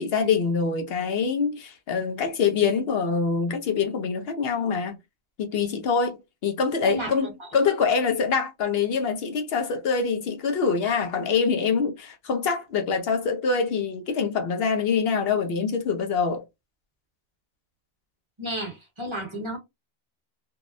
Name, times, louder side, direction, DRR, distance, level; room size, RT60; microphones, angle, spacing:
voice 1, 0.0-5.0 5.4-16.4, left 5 dB, 70° left, 0.8 m, -25 dB
voice 2, 6.8-7.5 18.4-19.6, right 1 dB, 30° right, 1.1 m, -32 dB
2.7 x 2.0 x 2.4 m
omnidirectional pair, 1.1 m